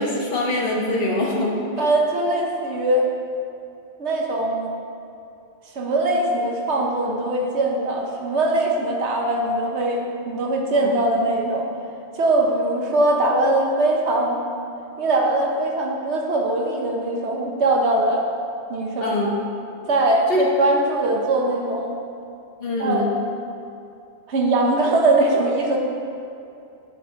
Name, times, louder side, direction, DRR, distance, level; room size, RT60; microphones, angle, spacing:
voice 1, 0.0-1.9 19.0-19.3 20.3-20.4 22.6-23.1, left 1 dB, 60° left, -2 dB, 1.3 m, -23 dB
voice 2, 1.8-3.1 4.0-4.7 5.7-11.7 12.1-14.4 15.0-18.2 18.7-19.1 19.9-21.9 22.8-23.2 24.3-25.8, right 2 dB, 80° right, 0 dB, 1.3 m, -21 dB
10.0 x 5.7 x 3.8 m, 2.6 s
omnidirectional pair, 1.1 m